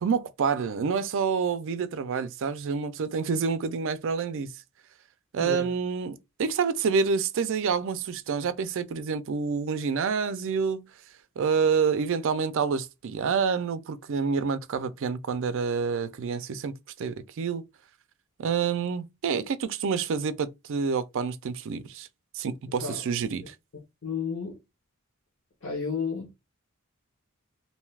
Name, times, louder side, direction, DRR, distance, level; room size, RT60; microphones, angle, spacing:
voice 1, 0.0-4.5 5.3-10.9 11.4-17.6 18.4-22.1 22.3-23.5, right 5 dB, 60° right, 0.4 m, -28 dB
voice 2, 24.0-24.6 25.6-26.3, left 5 dB, 60° left, 1.0 m, -31 dB
2.6 x 2.3 x 3.2 m
head